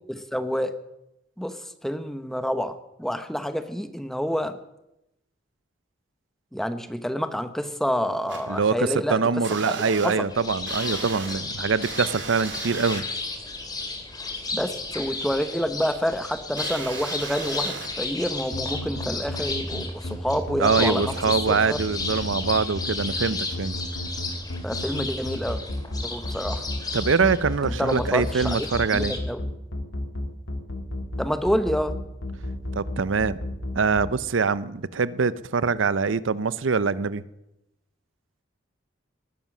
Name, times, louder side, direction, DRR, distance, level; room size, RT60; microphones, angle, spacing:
voice 1, 0.1-0.8 1.4-1.6 1.8-4.6 6.5-9.2 9.5-9.7 10.0-10.3 14.5-21.1 21.5-21.8 24.6-25.6 26.0-26.6 27.6-28.7 28.9-29.4 31.2-31.9, equal, ahead, 0.9 m, -28 dB
sound 1, 8.3-8.4 9.4-10.1 10.7-11.3 11.8-13.0 16.6-17.9, right 5 dB, 70° right, 3.0 m, -36 dB
voice 2, 8.5-13.0 20.6-23.7 26.9-29.1 32.7-33.4 33.7-37.2, right 5 dB, 90° right, 0.6 m, -24 dB
sound 2, 10.3-29.2, left 3 dB, 20° left, 2.3 m, -34 dB
sound 3, 18.5-34.1, left 1 dB, 85° left, 2.2 m, -32 dB
19.5 x 11.0 x 6.2 m
head